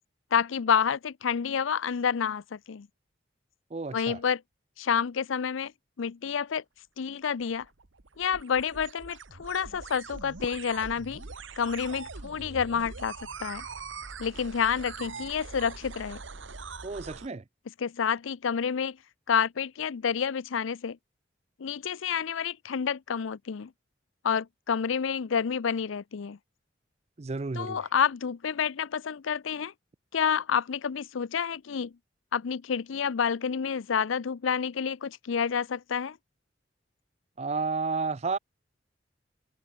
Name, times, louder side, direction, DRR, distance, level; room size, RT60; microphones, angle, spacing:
voice 1, 0.3-2.9 3.9-4.4 4.8-5.7 6.0-6.6 7.0-7.7 8.2-11.2 11.6-13.1 13.4-13.6 14.2-16.2 17.8-19.0 19.3-21.0 21.6-23.7 24.2-26.4 27.5-29.7 30.1-31.9 32.3-36.2, left 7 dB, 85° left, 0.5 m, -29 dB
voice 2, 3.7-4.2 16.8-17.4 27.2-27.8 37.4-38.4, right 4 dB, 35° right, 0.5 m, -31 dB
sound 1, 7.4-17.3, right 4 dB, 80° right, 1.5 m, -43 dB
Fireworks, 10.4-13.5, equal, 15° left, 6.8 m, -53 dB
head